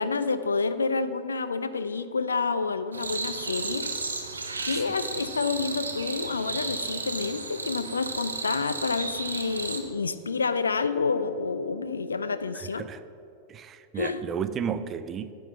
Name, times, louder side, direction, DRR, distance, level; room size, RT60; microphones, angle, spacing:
voice 1, 0.0-3.9 4.6-12.9 14.0-14.3, left 4 dB, 75° left, 0.4 m, -29 dB
sound 1, 2.9-9.8, right 3 dB, 75° right, 0.7 m, -34 dB
voice 2, 13.5-15.3, right 7 dB, 25° right, 0.4 m, -32 dB
9.9 x 3.9 x 6.9 m
figure-of-eight pair, 90°, 0 cm